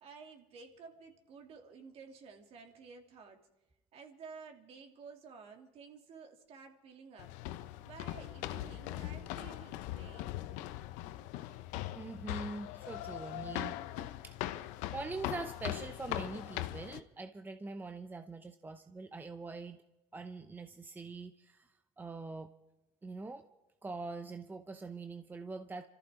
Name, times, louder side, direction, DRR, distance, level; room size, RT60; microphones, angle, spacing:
voice 1, 0.0-3.5 3.9-7.3 7.8-10.4, right 5 dB, 50° right, 3 dB, 2.7 m, -53 dB
sound 1, 7.2-17.0, left 14 dB, 70° left, 0.8 m, -40 dB
voice 2, 11.9-14.4 14.9-19.8 20.1-22.5 23.0-23.5 23.8-25.9, right 3 dB, 15° right, 9 dB, 0.7 m, -43 dB
26.0 x 14.0 x 3.7 m, 1.0 s
supercardioid pair, 100°, 13 cm